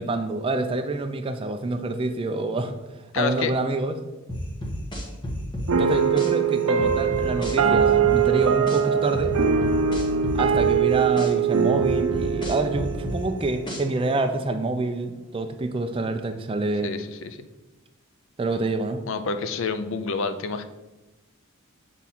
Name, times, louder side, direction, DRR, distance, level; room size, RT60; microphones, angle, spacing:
voice 1, 0.0-4.0 5.7-9.3 10.3-16.9 18.4-19.0, right 2 dB, 25° right, 7 dB, 0.4 m, -27 dB
voice 2, 3.1-3.5 16.8-17.5 19.1-20.6, left 4 dB, 60° left, 10 dB, 0.5 m, -28 dB
sound 1, 4.3-6.3 6.8-8.8 9.1-11.3 11.8-14.0, left 1 dB, 20° left, 1.1 m, -31 dB
sound 2, 5.7-14.2, right 7 dB, 85° right, 0.6 m, -22 dB
7.3 x 3.5 x 4.2 m, 1.1 s
head